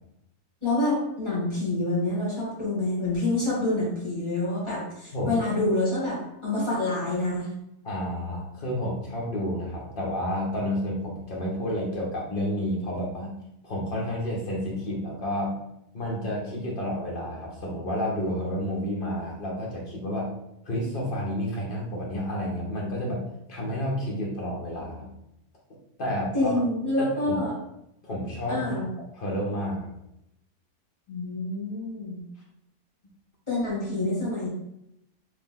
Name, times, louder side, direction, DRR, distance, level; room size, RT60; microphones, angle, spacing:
voice 1, 0.6-7.5 26.3-27.5 28.5-28.9 31.1-32.2 33.5-34.5, left 2 dB, 20° left, -8 dB, 1.4 m, -27 dB
voice 2, 7.8-13.3 13.6-15.6 15.9-20.3 20.6-23.2 23.5-25.1 26.0-26.6 27.0-27.4 28.0-28.7 29.1-29.9, equal, 40° left, -3 dB, 0.9 m, -30 dB
3.3 x 2.8 x 3.7 m, 0.82 s
omnidirectional pair, 1.6 m